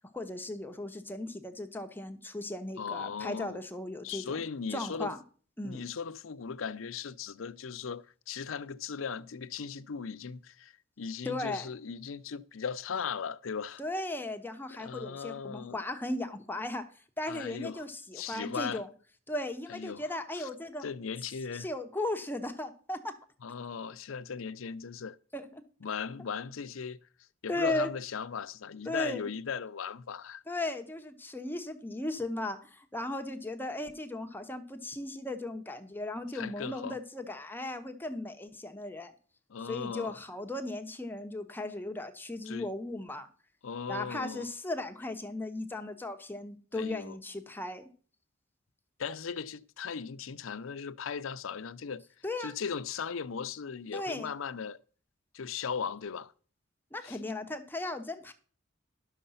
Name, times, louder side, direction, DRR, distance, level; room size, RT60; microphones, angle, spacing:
voice 1, 0.0-4.4 4.7-5.2 5.6-5.8 11.2-11.7 13.8-16.9 17.2-18.9 19.3-20.9 21.6-23.2 25.3-25.6 27.5-27.9 28.9-29.3 30.5-39.1 39.6-43.3 43.9-47.9 52.2-52.5 53.9-54.3 56.9-58.3, left 2 dB, 10° left, 0.9 m, -36 dB
voice 2, 2.8-3.6 4.0-5.1 5.6-13.8 14.8-15.8 17.3-17.8 18.1-18.8 19.7-20.0 20.3-20.5 20.8-21.7 23.4-25.2 25.8-27.0 27.4-30.4 36.3-37.0 39.5-40.2 42.5-42.7 43.6-44.5 46.7-47.2 49.0-52.0 52.4-54.8 55.3-56.3 57.0-57.2, left 6 dB, 85° left, 0.6 m, -38 dB
11.5 x 6.6 x 5.6 m
head